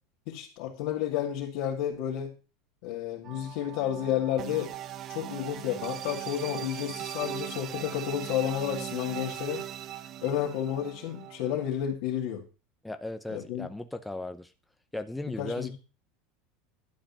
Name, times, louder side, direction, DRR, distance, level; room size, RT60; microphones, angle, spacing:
voice 1, 0.3-2.3 2.8-4.7 5.1-9.7 10.2-12.4 13.3-13.7 15.4-15.7, left 10 dB, 65° left, -3 dB, 2.4 m, -31 dB
sound 1, 3.2-11.7, right 11 dB, 35° right, 0.7 m, -39 dB
voice 2, 12.8-14.5 14.9-15.8, left 2 dB, 5° left, 8 dB, 0.8 m, -36 dB
12.0 x 5.1 x 7.4 m, 0.33 s
supercardioid pair, 140°, 0 cm